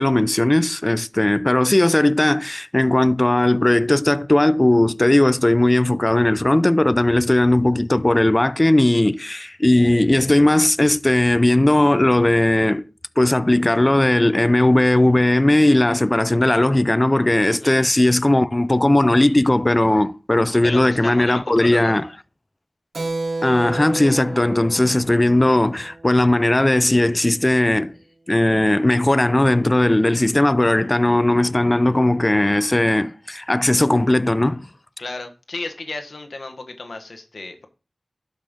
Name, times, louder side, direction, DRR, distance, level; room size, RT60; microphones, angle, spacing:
voice 1, 0.0-12.8 13.2-22.1 23.4-27.9 28.3-34.7, left 1 dB, 30° left, 0.4 m, -17 dB
voice 2, 20.5-22.0 35.0-37.7, left 3 dB, 75° left, 1.3 m, -33 dB
Keyboard (musical), 22.9-27.0, right 2 dB, 80° right, 1.2 m, -32 dB
12.0 x 5.4 x 3.7 m
wide cardioid pair, 45°, 0 cm